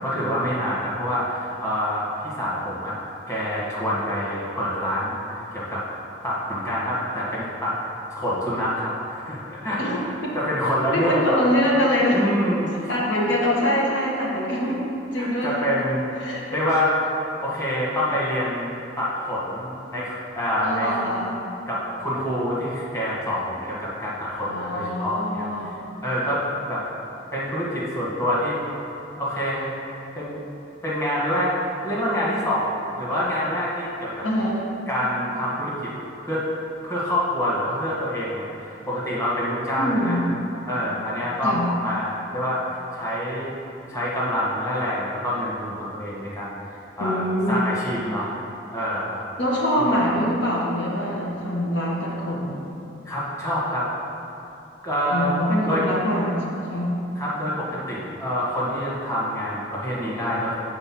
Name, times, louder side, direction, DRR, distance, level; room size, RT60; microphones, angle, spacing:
voice 1, 0.0-2.9 3.3-5.8 6.2-7.8 8.1-10.1 10.3-11.4 12.1-13.2 15.1-16.1 16.5-16.9 17.4-21.0 21.7-25.7 26.0-26.8 27.3-28.6 29.1-29.7 30.1-30.4 30.8-31.5 31.8-32.7 33.0-34.2 34.9-35.9 36.2-36.4 36.8-40.2 40.7-43.5 43.9-46.5 47.0-47.2 47.5-48.3 48.7-49.2 49.8-49.9 53.0-53.9 54.8-55.3 55.6-55.8 57.1-60.6, equal, 15° left, -8 dB, 1.5 m, -26 dB
voice 2, 9.8-10.3 10.9-12.2 12.9-14.8 15.1-15.6 16.2-16.4 20.6-21.3 24.5-25.8 34.2-34.6 39.8-40.2 41.4-41.6 47.0-47.8 49.4-52.6 55.1-56.9, equal, 80° left, -4 dB, 1.3 m, -24 dB
7.9 x 4.0 x 6.0 m, 2.9 s
head